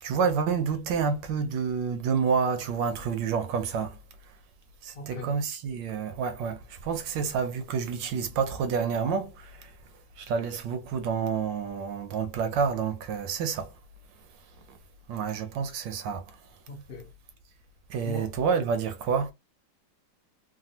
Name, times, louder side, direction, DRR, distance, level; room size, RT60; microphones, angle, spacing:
voice 1, 0.0-4.0 4.8-9.7 10.2-13.7 15.1-16.4 17.9-19.3, right 6 dB, 75° right, 1.2 m, -29 dB
voice 2, 4.9-5.3 16.7-17.1 18.0-18.3, left 2 dB, 65° left, 0.5 m, -38 dB
3.4 x 2.2 x 2.7 m
omnidirectional pair, 2.2 m